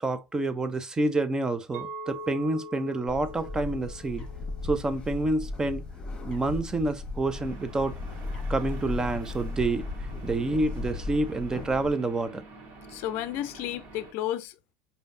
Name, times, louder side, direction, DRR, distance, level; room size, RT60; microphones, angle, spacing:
voice 1, 0.0-4.2 4.6-5.8 6.2-7.9 8.5-9.9 10.2-12.4, right 2 dB, 15° right, 0.6 m, -28 dB
Chink clink, 1.7-6.0, equal, 75° right, 0.9 m, -43 dB
Bird, 3.1-11.9, left 3 dB, 20° left, 1.5 m, -36 dB
sound 1, 7.3-14.1, right 3 dB, 45° right, 1.9 m, -47 dB
voice 2, 12.9-14.7, left 12 dB, 55° left, 0.5 m, -33 dB
5.0 x 2.8 x 2.6 m
hypercardioid pair, 105°, 5 cm